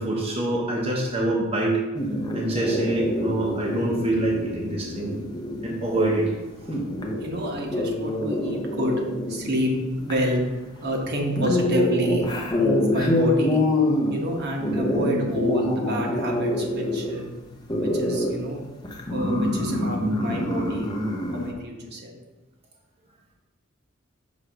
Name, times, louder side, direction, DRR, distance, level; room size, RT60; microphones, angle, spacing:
voice 1, 0.0-1.8 2.3-5.1 5.6-6.3, right 1 dB, 30° right, -3 dB, 0.8 m, -25 dB
sound 1, 1.9-21.5, left 1 dB, 20° left, 0.7 m, -27 dB
voice 2, 7.2-9.0 9.3-9.7 10.0-10.4 10.8-12.3 12.5-13.6 14.1-17.3 17.8-18.6 19.1-20.9 21.3-22.2, equal, 50° right, 0 dB, 1.0 m, -28 dB
6.0 x 3.2 x 5.0 m, 1.1 s
head